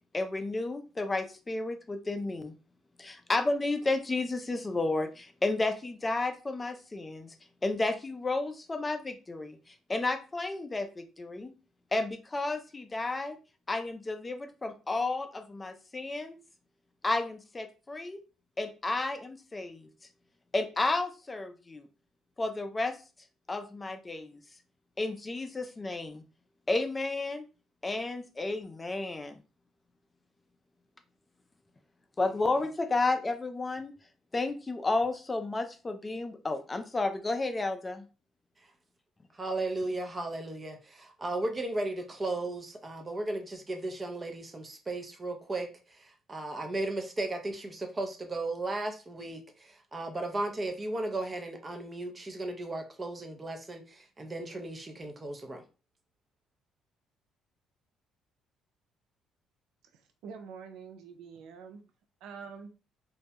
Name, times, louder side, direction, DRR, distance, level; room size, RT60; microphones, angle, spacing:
voice 1, 0.1-2.5 3.0-7.3 7.6-11.5 11.9-13.4 13.7-16.4 17.0-18.2 18.6-19.9 20.5-21.8 22.4-23.0 23.5-24.4 25.0-26.2 26.7-27.4 27.8-29.4 32.2-33.9 34.3-38.1, left 2 dB, 20° left, 0.4 m, -32 dB
voice 2, 39.3-55.6, right 2 dB, 25° right, 0.6 m, -35 dB
voice 3, 59.9-61.8 62.2-62.7, right 6 dB, 80° right, 0.4 m, -46 dB
2.2 x 2.0 x 2.7 m
cardioid pair, 85°, 0 cm